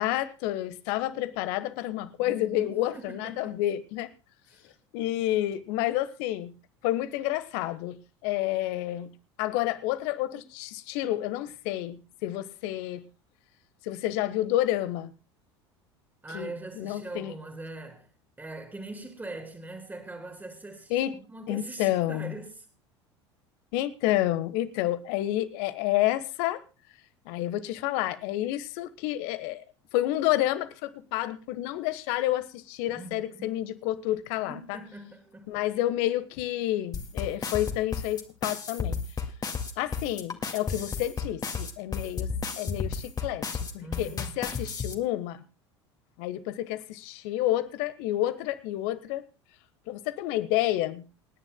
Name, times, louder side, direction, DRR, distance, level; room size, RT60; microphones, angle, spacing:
voice 1, 0.0-4.1 4.9-6.5 6.8-9.1 9.4-13.0 13.8-15.1 16.3-16.5 16.8-17.3 20.9-21.2 21.5-22.4 23.7-26.6 27.3-29.6 29.9-34.8 35.5-39.0 39.8-42.3 42.6-43.4 43.7-45.4 46.2-49.2 49.9-51.0, left 14 dB, 60° left, 1.3 m, -29 dB
voice 2, 2.2-3.6 4.5-4.7 16.2-18.1 18.4-22.7 32.9-33.6 34.5-35.5 43.8-44.4, right 2 dB, 10° right, 3.1 m, -42 dB
sound 1, 36.9-44.9, left 5 dB, 25° left, 2.0 m, -32 dB
28.5 x 10.0 x 2.2 m
figure-of-eight pair, 70°, 15 cm